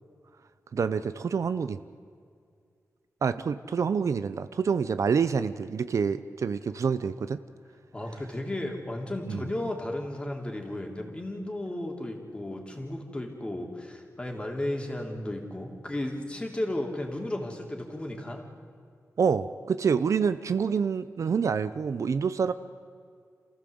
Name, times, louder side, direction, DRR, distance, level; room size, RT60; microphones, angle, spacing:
voice 1, 0.7-1.8 3.2-7.4 9.3-9.4 19.2-22.5, right 6 dB, 65° right, 12 dB, 0.7 m, -27 dB
voice 2, 7.9-18.4, left 1 dB, 20° left, 1 dB, 3.1 m, -34 dB
28.0 x 15.5 x 7.9 m, 2.2 s
wide cardioid pair, 140°, 6 cm